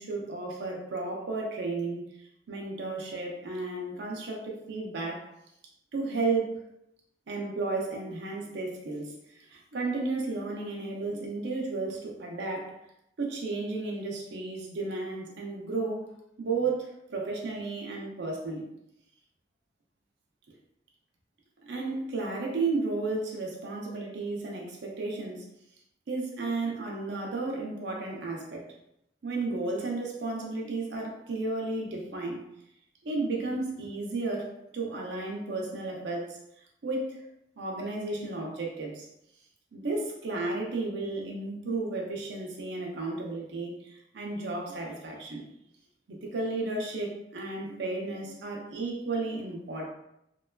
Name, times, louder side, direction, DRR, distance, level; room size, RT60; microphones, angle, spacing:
voice 1, 0.0-2.0 2.5-5.3 5.9-6.6 7.3-12.8 13.2-18.7 21.6-25.4 26.1-28.7 29.2-32.4 33.0-36.4 36.8-37.3 37.6-39.1 39.7-45.4 46.1-49.9, right 3 dB, 70° right, -1 dB, 0.5 m, -33 dB
3.0 x 2.2 x 2.2 m, 0.79 s
head